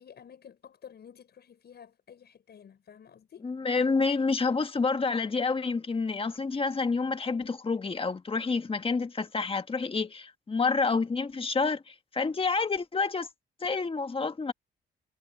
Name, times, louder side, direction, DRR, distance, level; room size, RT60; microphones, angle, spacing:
voice 1, 0.0-3.5 4.4-4.6 10.0-10.1, left 8 dB, 55° left, 6.8 m, -51 dB
voice 2, 3.4-13.3 13.6-14.5, left 4 dB, 25° left, 1.7 m, -28 dB
cardioid pair, 90°, 20 cm